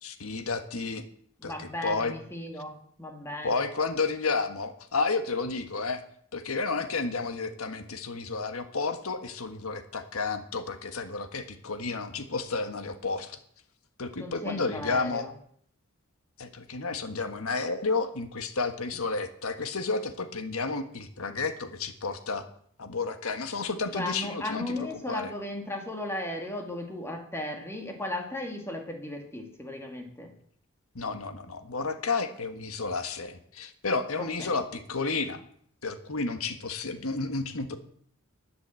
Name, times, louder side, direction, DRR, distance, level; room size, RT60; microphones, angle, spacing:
voice 1, 0.0-1.0 1.4-2.1 3.4-6.0 6.3-13.4 14.0-15.3 16.4-22.4 22.8-25.3 30.9-35.4 35.8-37.8, left 4 dB, 75° left, 8 dB, 1.5 m, -31 dB
voice 2, 1.4-3.6 14.2-15.3 23.9-30.3 34.2-34.5, left 1 dB, 10° left, 2 dB, 2.2 m, -36 dB
11.5 x 9.8 x 7.7 m, 0.63 s
head